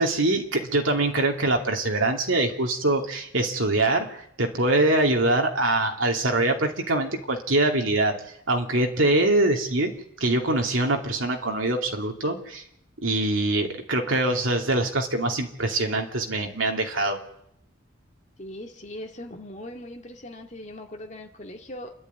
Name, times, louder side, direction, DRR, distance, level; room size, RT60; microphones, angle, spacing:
voice 1, 0.0-8.1 8.5-9.9 10.2-12.6 13.0-17.2, right 2 dB, 90° right, 2 dB, 2.8 m, -23 dB
voice 2, 18.4-21.9, left 1 dB, 35° left, 2 dB, 2.3 m, -40 dB
27.5 x 11.5 x 9.6 m, 0.75 s
head